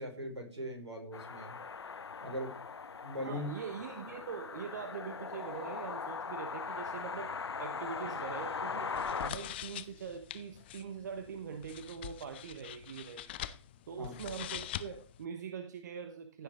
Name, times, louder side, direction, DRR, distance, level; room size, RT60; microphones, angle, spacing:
voice 1, 0.0-1.6 2.2-2.6 3.0-3.5 14.0-14.1, equal, 70° right, 2 dB, 5.1 m, -40 dB
sound 1, 1.1-9.3, left 5 dB, 60° left, 0.7 m, -40 dB
voice 2, 3.2-13.5 13.9-16.4, right 6 dB, 40° right, 8 dB, 1.0 m, -43 dB
sound 2, 8.9-15.2, left 12 dB, 20° left, 0.5 m, -44 dB
15.0 x 6.5 x 3.6 m, 0.38 s
figure-of-eight pair, 135°, 15 cm